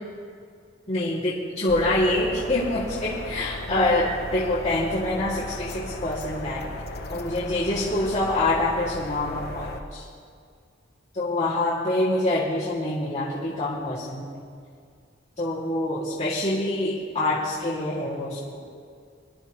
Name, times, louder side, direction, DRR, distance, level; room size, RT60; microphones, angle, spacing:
voice 1, 0.9-6.7 7.1-10.0 11.1-14.4 15.4-18.6, left 1 dB, 35° left, -10 dB, 2.2 m, -26 dB
sound 1, 1.7-9.8, left 1 dB, 55° left, 1.0 m, -36 dB
23.5 x 11.0 x 3.0 m, 2.2 s
head